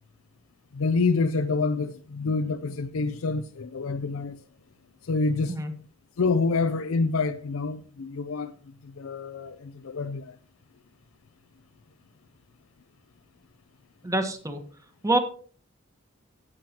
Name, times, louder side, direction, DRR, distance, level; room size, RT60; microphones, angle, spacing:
voice 1, 0.7-4.4 5.0-5.6 6.2-8.5 8.8-10.4, left 4 dB, 80° left, 0.5 m, -27 dB
voice 2, 14.0-14.6 15.0-15.2, right 2 dB, 15° right, 1.3 m, -25 dB
16.5 x 7.4 x 2.9 m
head